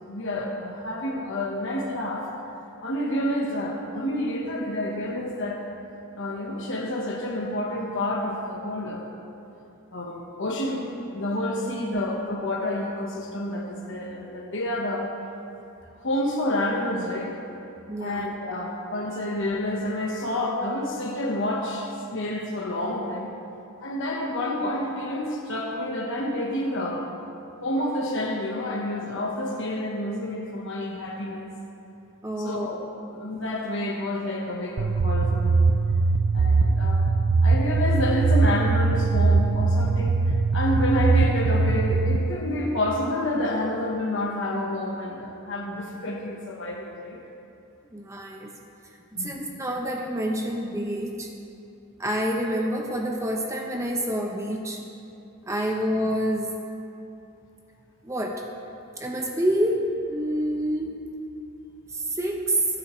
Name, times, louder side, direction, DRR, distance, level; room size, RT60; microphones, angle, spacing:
voice 1, 0.1-2.3 2.8-5.7 6.2-9.1 9.9-15.1 16.0-17.4 18.0-23.3 23.8-27.1 27.6-31.5 32.4-32.8 33.1-35.7 36.3-37.0 37.4-47.2 49.2-49.4, left 1 dB, 55° left, -1 dB, 1.2 m, -29 dB
voice 2, 17.9-18.3 32.2-32.7 47.9-48.5 49.2-51.3 52.0-54.8 55.5-56.5 58.0-58.4 59.0-61.0 61.9-62.6, right 1 dB, 15° right, 1 dB, 0.7 m, -27 dB
sound 1, 34.8-42.2, right 3 dB, 80° right, 0.5 m, -21 dB
24.5 x 8.3 x 3.2 m, 2.7 s
head